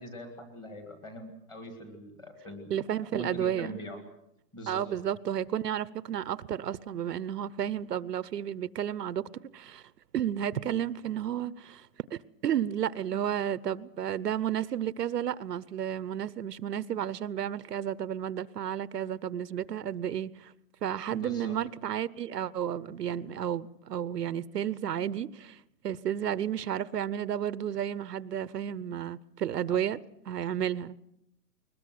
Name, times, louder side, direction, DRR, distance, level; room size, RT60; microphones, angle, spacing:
voice 1, 0.0-2.7 3.1-4.0 4.5-4.9 21.1-21.6 29.7-29.8, equal, 10° left, 1.9 m, -42 dB
voice 2, 2.7-3.8 4.7-9.2 9.5-9.8 10.1-20.5 20.8-30.0 30.2-31.0, right 10 dB, 75° right, 1.0 m, -32 dB
21.5 x 20.5 x 7.7 m
hypercardioid pair, 180°, 48 cm